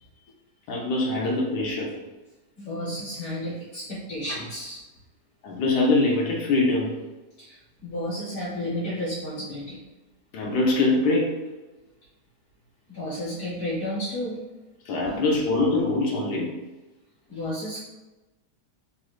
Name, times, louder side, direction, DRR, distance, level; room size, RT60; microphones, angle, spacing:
voice 1, 0.7-1.9 5.4-7.0 10.3-11.4 14.9-16.5, left 2 dB, 85° left, -2 dB, 1.2 m, -23 dB
voice 2, 2.6-4.8 7.4-9.8 12.9-14.4 15.0-15.1 17.3-17.8, left 1 dB, 50° left, -10 dB, 1.1 m, -32 dB
3.3 x 3.0 x 2.3 m, 1.1 s
omnidirectional pair, 1.8 m